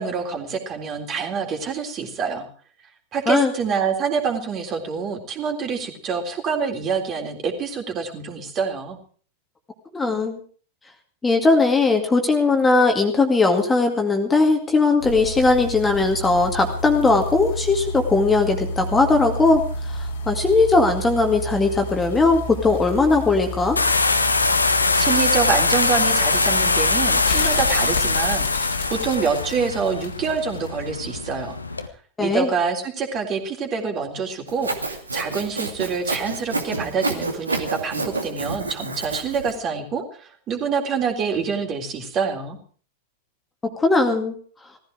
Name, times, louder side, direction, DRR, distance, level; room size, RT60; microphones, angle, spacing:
voice 1, 0.0-2.5 3.1-9.0 25.0-31.6 32.2-42.6, right 5 dB, 30° right, 3 dB, 3.8 m, -26 dB
voice 2, 9.9-10.4 11.2-23.8 32.2-32.5 43.8-44.4, left 3 dB, 15° left, 4 dB, 2.2 m, -19 dB
sound 1, 15.0-30.7 31.0-31.1, left 3 dB, 60° left, 2.5 m, -31 dB
sound 2, 23.8-31.9, left 3 dB, 80° left, 1.4 m, -22 dB
Sawing, 34.5-39.5, right 3 dB, 80° right, 2.4 m, -28 dB
18.5 x 15.0 x 4.9 m, 0.43 s
figure-of-eight pair, 90°, 0 cm